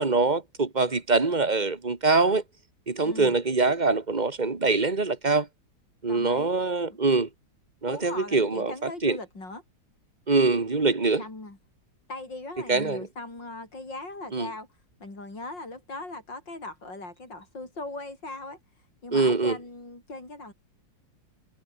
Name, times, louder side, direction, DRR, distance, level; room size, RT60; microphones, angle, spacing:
voice 1, 0.0-2.4 2.9-5.5 6.0-7.3 7.8-9.2 10.3-11.2 12.7-13.1 14.3-14.5 19.1-19.6, right 3 dB, 25° right, 1.9 m, -24 dB
voice 2, 6.1-6.6 6.9-7.0 7.9-9.6 11.2-11.6 12.1-14.7 15.0-18.6 19.0-20.5, left 2 dB, 65° left, 7.9 m, -39 dB
omnidirectional pair, 2.1 m